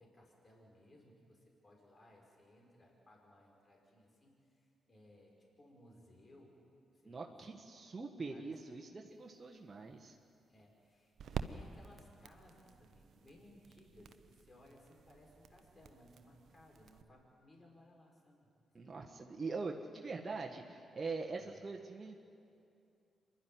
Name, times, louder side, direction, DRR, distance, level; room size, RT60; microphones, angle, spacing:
voice 1, 0.0-6.6 6.9-7.5 8.3-8.4 10.5-18.5 19.0-19.1 21.4-21.6, left 1 dB, 40° left, -1 dB, 5.2 m, -62 dB
voice 2, 7.0-10.1 18.7-22.2, right 4 dB, 35° right, 0 dB, 1.6 m, -43 dB
sound 1, 9.1-17.0, right 6 dB, 65° right, 0.9 m, -49 dB
26.0 x 12.0 x 9.5 m, 2.6 s
hypercardioid pair, 45°, 0 cm